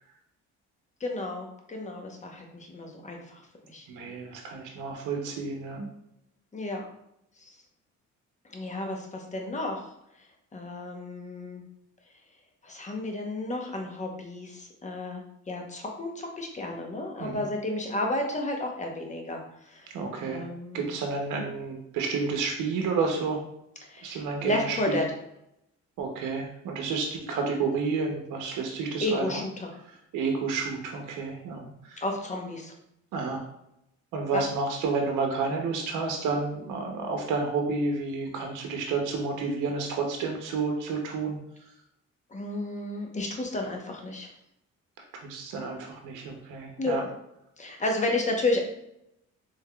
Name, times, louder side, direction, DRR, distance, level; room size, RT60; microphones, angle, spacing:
voice 1, 1.0-3.4 3.7-3.9 6.5-6.8 7.4-7.5 8.5-9.8 10.5-11.6 12.6-19.4 19.6-19.9 20.2-20.9 23.8-25.1 29.0-29.7 32.0-32.7 34.3-34.4 42.3-44.3 46.8-46.9 47.6-48.6, left 2 dB, 25° left, 2 dB, 0.8 m, -32 dB
voice 2, 3.9-5.9 17.2-17.4 19.9-20.5 20.7-23.4 24.0-25.0 26.0-29.3 30.1-32.0 33.1-33.4 34.1-41.4 45.2-47.0, right 4 dB, 85° right, 2 dB, 0.7 m, -30 dB
3.5 x 3.5 x 2.2 m, 0.79 s
cardioid pair, 90°, 30 cm